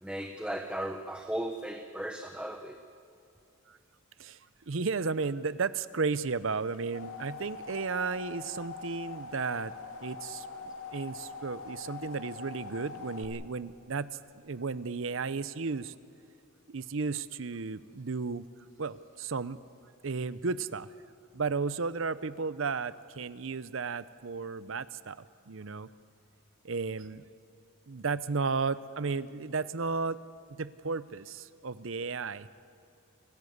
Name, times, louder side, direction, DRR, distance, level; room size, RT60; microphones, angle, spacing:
voice 1, 0.0-2.8, right 1 dB, 5° right, 5 dB, 0.8 m, -36 dB
voice 2, 4.7-9.7 10.0-10.5 10.9-15.9 16.7-18.5 18.8-19.6 20.0-20.9 21.3-25.9 26.6-27.2 27.9-30.2 30.5-32.5, right 4 dB, 65° right, 16 dB, 0.7 m, -34 dB
sound 1, 6.5-13.2, left 4 dB, 85° left, 2.3 m, -43 dB
28.5 x 15.0 x 8.0 m, 2.7 s
head